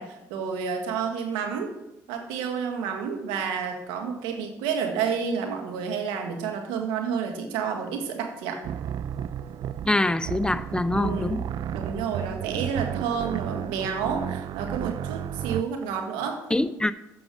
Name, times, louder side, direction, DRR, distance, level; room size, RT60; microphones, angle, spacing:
voice 1, 0.0-1.7 2.1-8.6 10.9-11.3 11.7-16.4, right 6 dB, 90° right, 4 dB, 1.5 m, -30 dB
sound 1, 8.6-15.6, right 9 dB, 65° right, 0.4 m, -33 dB
voice 2, 9.9-11.4 16.5-16.9, left 2 dB, 10° left, 14 dB, 0.5 m, -24 dB
8.7 x 6.4 x 6.3 m, 0.89 s
supercardioid pair, 65°, 8 cm